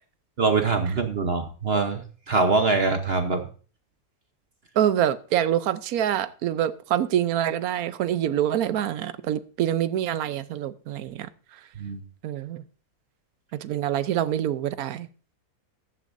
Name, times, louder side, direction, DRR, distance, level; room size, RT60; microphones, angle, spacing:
voice 1, 0.4-2.0 2.3-3.4 11.8-12.0, right 4 dB, 45° right, 1.1 m, -23 dB
voice 2, 4.8-11.3 12.2-12.6 13.5-15.1, right 11 dB, 75° right, 1.2 m, -25 dB
15.0 x 11.5 x 2.6 m
omnidirectional pair, 1.6 m